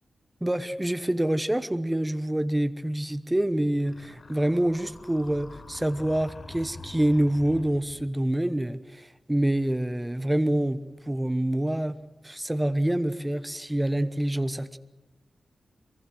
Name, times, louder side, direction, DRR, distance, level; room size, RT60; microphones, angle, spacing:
voice 1, 0.4-10.8 11.1-12.0 12.2-14.8, right 1 dB, 10° right, 12 dB, 1.0 m, -26 dB
sound 1, 3.8-8.2, left 3 dB, 50° left, 5.9 m, -45 dB
24.0 x 23.5 x 7.8 m, 1.0 s
wide cardioid pair, 100°, 0 cm